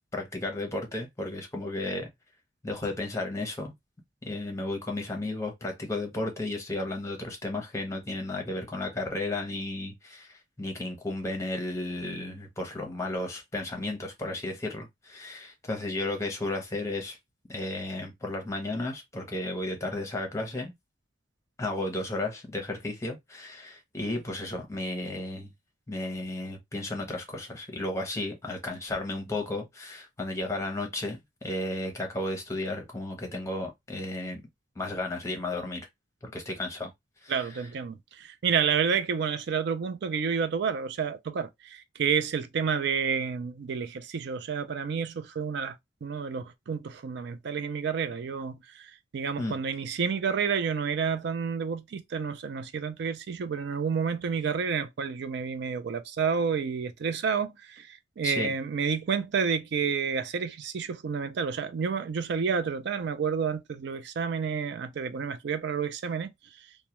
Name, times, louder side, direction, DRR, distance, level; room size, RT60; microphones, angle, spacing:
voice 1, 0.1-2.1 2.6-3.7 4.2-17.2 17.5-20.7 21.6-25.5 25.9-34.4 34.8-35.9 36.2-36.9 37.2-37.6 49.4-49.6 58.2-58.5, left 2 dB, 15° left, 0.7 m, -33 dB
voice 2, 37.3-45.8 46.0-66.3, right 6 dB, 60° right, 0.4 m, -30 dB
2.2 x 2.1 x 2.8 m
head